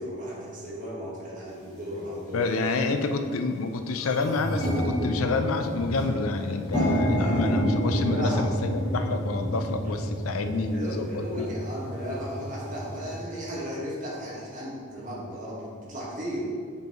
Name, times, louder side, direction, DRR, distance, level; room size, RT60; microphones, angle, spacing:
voice 1, 0.0-2.4 3.0-3.1 6.7-6.9 7.2-7.5 8.1-8.4 9.8-9.9 10.7-16.5, equal, 40° right, -5 dB, 1.5 m, -35 dB
sound 1, 1.6-1.7 2.5-2.7 3.1-3.2 3.5-13.2, equal, 15° left, 1.1 m, -29 dB
voice 2, 2.3-11.5, left 3 dB, 85° left, 7 dB, 0.5 m, -28 dB
6.9 x 5.5 x 3.0 m, 2.2 s
head